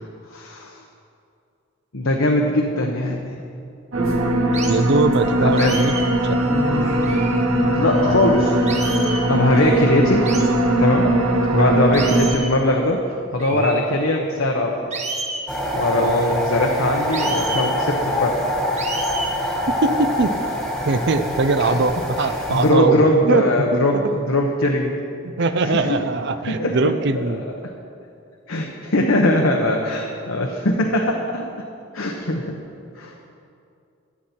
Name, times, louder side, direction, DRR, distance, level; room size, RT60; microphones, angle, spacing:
voice 1, 0.3-0.7 1.9-3.4 5.4-5.8 7.0-7.1 7.8-10.3 10.8-11.1 11.5-13.0 13.3-15.0 15.7-18.4 21.6-21.7 22.2-24.9 25.6-26.0 26.5-26.8 27.1-27.2 28.5-31.5 31.9-32.5 32.9-33.1, left 1 dB, 80° left, 0 dB, 1.0 m, -21 dB
sound 1, 3.9-12.3, right 1 dB, 90° right, 1.8 m, -20 dB
sound 2, 4.5-4.8 5.6-6.1 7.0-7.4 8.7-9.3 10.3-10.5 11.9-12.6 13.4-13.8 14.9-15.5 17.1-17.7 18.8-19.3, right 3 dB, 35° right, 1.1 m, -30 dB
voice 2, 4.7-5.9 6.2-6.4 11.5-11.7 13.5-13.7 19.7-20.3 20.9-23.4 23.7-23.9 25.2-27.4, right 3 dB, 55° right, 10 dB, 0.6 m, -21 dB
sound 3, 15.5-22.7, left 1 dB, ahead, 1.5 m, -25 dB
15.0 x 9.6 x 4.4 m, 2.5 s
head